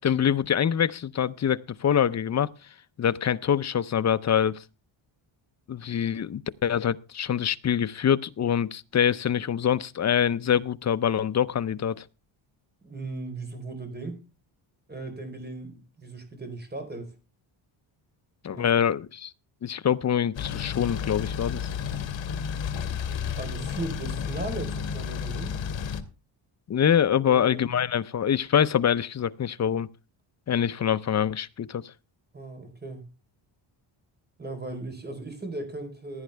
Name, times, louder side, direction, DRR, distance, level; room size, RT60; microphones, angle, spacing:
voice 1, 0.0-2.5 3.0-4.6 5.7-12.0 18.4-19.3 19.6-21.7 26.7-29.9 30.5-31.8, left 8 dB, 35° left, 0.6 m, -25 dB
voice 2, 12.8-14.2 14.9-17.1 18.5-18.8 23.2-25.5 27.2-27.6 32.3-33.1 34.4-36.2, right 2 dB, 20° right, 4.0 m, -37 dB
sound 1, 20.3-26.0, left 7 dB, 65° left, 1.9 m, -32 dB
16.0 x 10.0 x 3.3 m
cardioid pair, 130°, 48 cm